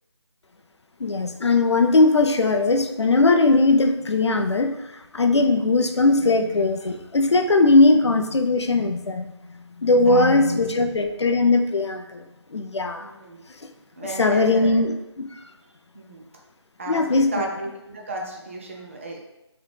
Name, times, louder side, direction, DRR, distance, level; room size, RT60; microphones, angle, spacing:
voice 1, 1.0-4.8 5.1-9.3 9.8-12.2 12.5-13.1 14.2-15.4 16.9-17.3, left 2 dB, 70° left, 6 dB, 0.5 m, -19 dB
voice 2, 10.0-10.6 13.0-13.4 14.0-14.9 15.9-16.3 16.8-19.2, right 2 dB, 25° right, -1 dB, 0.6 m, -34 dB
4.9 x 3.2 x 3.3 m, 0.91 s
figure-of-eight pair, 165°, 15 cm